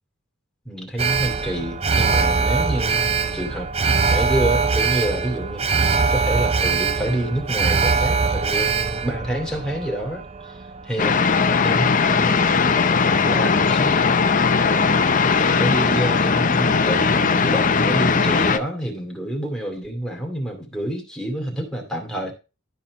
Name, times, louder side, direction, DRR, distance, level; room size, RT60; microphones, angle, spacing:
voice 1, 0.6-3.7 4.1-14.2 14.7-22.3, right 1 dB, 5° left, 2.5 m, -28 dB
Alarm, 1.0-11.2 11.6-11.7, right 4 dB, 30° right, 0.5 m, -22 dB
sound 1, 11.0-18.6, left 5 dB, 40° left, 0.7 m, -19 dB
12.5 x 4.4 x 4.8 m
head